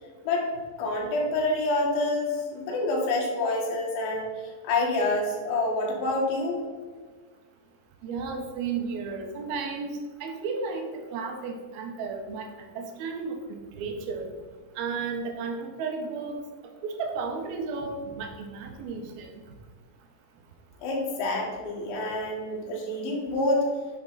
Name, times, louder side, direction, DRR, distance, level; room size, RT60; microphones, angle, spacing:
voice 1, 0.8-4.3 4.6-6.6 20.8-23.7, left 2 dB, 85° left, -2 dB, 4.3 m, -27 dB
voice 2, 8.0-14.3 14.8-16.4 16.8-19.3, right 4 dB, 70° right, 3 dB, 2.7 m, -33 dB
9.9 x 7.0 x 4.1 m, 1.5 s
omnidirectional pair, 5.1 m